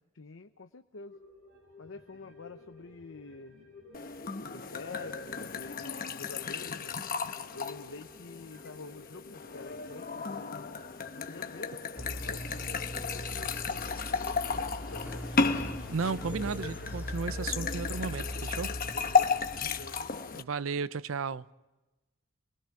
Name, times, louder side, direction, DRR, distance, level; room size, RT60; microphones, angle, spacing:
voice 1, 0.1-1.2 1.8-3.6 4.4-7.0 7.5-10.7 11.2-15.2 18.9-20.2, left 3 dB, 65° left, 0.8 m, -48 dB
sound 1, 1.0-17.8 18.2-18.3, left 3 dB, 50° right, 6.9 m, -55 dB
sound 2, 3.9-20.4, left 4 dB, 45° left, 1.0 m, -34 dB
sound 3, 12.0-20.4, equal, 10° right, 2.6 m, -41 dB
voice 2, 15.9-18.8 20.3-21.4, right 5 dB, 75° right, 0.6 m, -34 dB
28.0 x 21.5 x 4.7 m
head